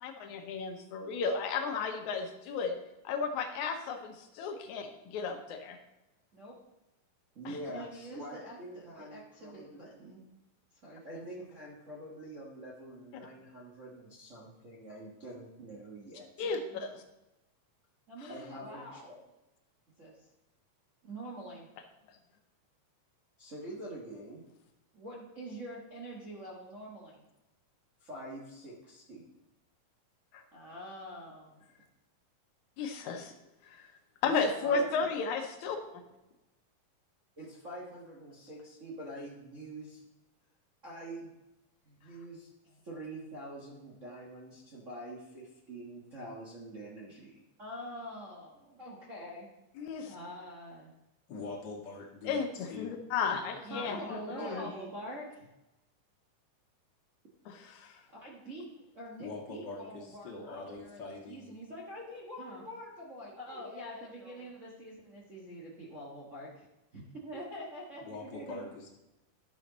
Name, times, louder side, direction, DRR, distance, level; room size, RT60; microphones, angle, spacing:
voice 1, 0.0-2.7 3.0-5.8 7.5-7.6 16.4-17.0 30.3-30.4 32.8-33.3 33.7-33.9 34.2-36.0 49.8-50.2 52.2-54.7 57.5-58.0, left 5 dB, 70° left, 5 dB, 2.1 m, -34 dB
voice 2, 7.3-10.2 10.8-16.9 18.1-19.3 20.0-20.2 21.0-21.7 23.4-24.4 24.9-27.2 28.0-29.2 30.5-31.6 34.2-35.2 37.4-40.0 40.8-41.3 41.8-49.5 50.0-50.9 53.6-55.5 58.1-58.7 58.9-66.7 66.9-68.6, right 1 dB, 80° right, -5 dB, 0.6 m, -45 dB
voice 3, 51.3-52.9 53.3-53.4 59.2-61.6 68.0-68.9, left 3 dB, 50° left, -5 dB, 1.5 m, -43 dB
12.0 x 6.3 x 4.0 m, 0.96 s
omnidirectional pair, 3.8 m